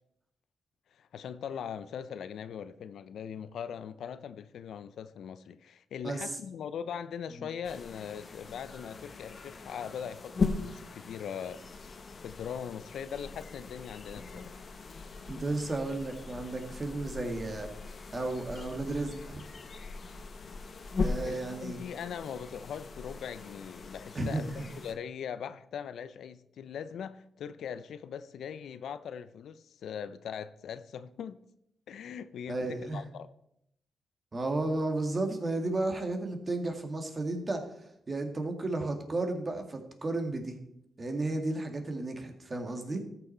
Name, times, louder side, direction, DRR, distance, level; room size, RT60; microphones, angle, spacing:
voice 1, 0.9-11.6 12.2-14.5 21.2-24.5 24.8-31.4 31.9-33.3, left 8 dB, 80° left, 0.4 m, -40 dB
sound 1, 7.6-24.9, left 4 dB, 50° left, 1.0 m, -39 dB
voice 2, 15.3-17.7 18.1-19.4 21.0-21.8 24.2-24.7 32.5-33.1 34.3-37.6 38.1-40.6 41.0-43.0, right 2 dB, 40° right, 1.9 m, -33 dB
13.5 x 6.1 x 4.3 m
supercardioid pair, 55°, 0 cm